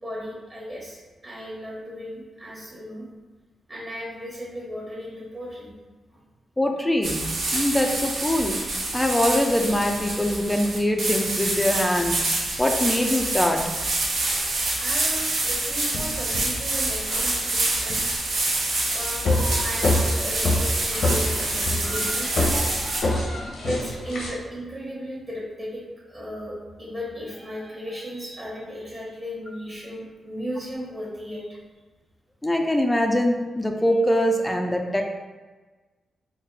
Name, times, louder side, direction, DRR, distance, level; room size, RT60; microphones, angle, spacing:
voice 1, 0.0-3.1 3.7-5.7 6.1-6.2 14.8-18.1 18.9-22.8 23.6-31.6, equal, 30° right, -5 dB, 1.2 m, -36 dB
voice 2, 6.6-7.3 7.5-8.6 8.9-12.2 12.6-13.6 32.4-35.1, left 1 dB, 15° left, 3 dB, 0.4 m, -23 dB
sound 1, 7.0-23.0, right 2 dB, 75° right, 0.9 m, -27 dB
sound 2, 15.0-15.1 15.7-24.3, left 1 dB, 80° left, 1.0 m, -27 dB
4.0 x 2.1 x 4.0 m, 1.3 s
cardioid pair, 70°, 0 cm